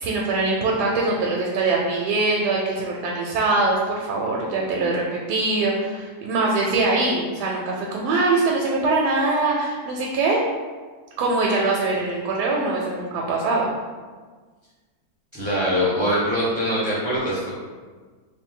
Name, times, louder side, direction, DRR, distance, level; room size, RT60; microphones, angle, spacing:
voice 1, 0.0-10.4 11.2-13.7, right 3 dB, 85° right, -2 dB, 1.1 m, -23 dB
voice 2, 15.3-17.5, equal, 30° right, -9 dB, 0.5 m, -23 dB
3.2 x 2.6 x 3.6 m, 1.5 s
omnidirectional pair, 1.7 m